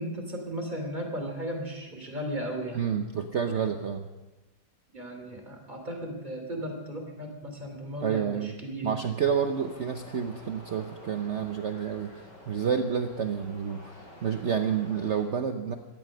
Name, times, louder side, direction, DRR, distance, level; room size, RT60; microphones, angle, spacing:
voice 1, 0.0-2.8 4.9-8.9, right 1 dB, 25° right, 3 dB, 3.0 m, -35 dB
voice 2, 2.7-4.0 8.0-8.6 8.8-12.1 12.5-15.8, right 7 dB, 50° right, 6 dB, 0.9 m, -29 dB
sound 1, 9.4-15.2, left 1 dB, 80° left, 6.9 m, -49 dB
17.5 x 12.5 x 6.5 m, 1.1 s
omnidirectional pair, 1.9 m